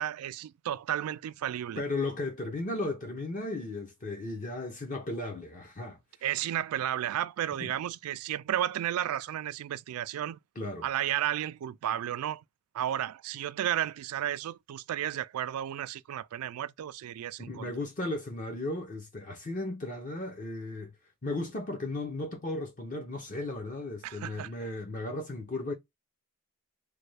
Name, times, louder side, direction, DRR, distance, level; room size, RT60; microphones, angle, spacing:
voice 1, 0.0-1.8 6.2-10.4 10.8-12.4 12.7-17.7 24.0-24.5, right 11 dB, 80° right, 0.3 m, -33 dB
voice 2, 1.8-6.0 7.6-7.7 10.6-10.9 17.4-20.9 21.2-25.7, left 2 dB, 35° left, 0.6 m, -35 dB
3.3 x 2.2 x 3.2 m
head